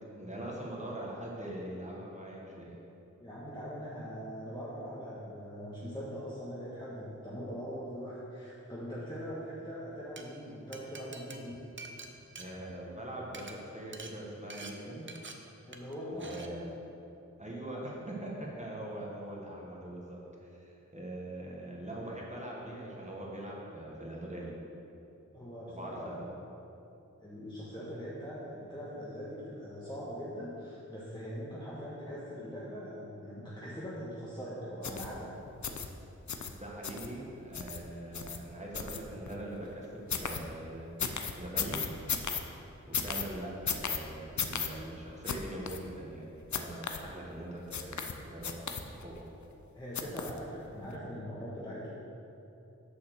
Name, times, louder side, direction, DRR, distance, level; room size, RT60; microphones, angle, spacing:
voice 1, 0.0-2.8 12.4-15.1 16.1-16.7 17.4-24.5 25.7-26.3 36.5-40.9 41.4-41.8 42.9-49.2, right 1 dB, 25° right, -4 dB, 1.5 m, -42 dB
voice 2, 3.2-11.6 15.7-16.6 25.3-26.3 27.2-35.3 49.7-51.9, equal, 15° left, -9 dB, 1.6 m, -41 dB
Glass, 9.9-10.2 10.7-13.0 13.3-13.5 13.9-14.1 14.5-14.7 15.1-15.3 15.7-15.9 16.2-16.5, right 3 dB, 40° right, 0.7 m, -46 dB
sound 1, 34.8-35.1 35.6-35.9 36.3-36.5 36.8-37.1 37.5-37.8 38.1-38.4 38.7-39.3 40.1-40.4 41.0-42.4 42.9-43.3 43.7-44.0 44.4-44.7 45.3-45.4 45.7-45.8 46.5-47.0 47.7-48.1 48.4-49.1 50.0-50.4 50.8-50.9, left 6 dB, 70° left, 0.6 m, -34 dB
6.7 x 5.7 x 6.3 m, 2.8 s
wide cardioid pair, 60°, 30 cm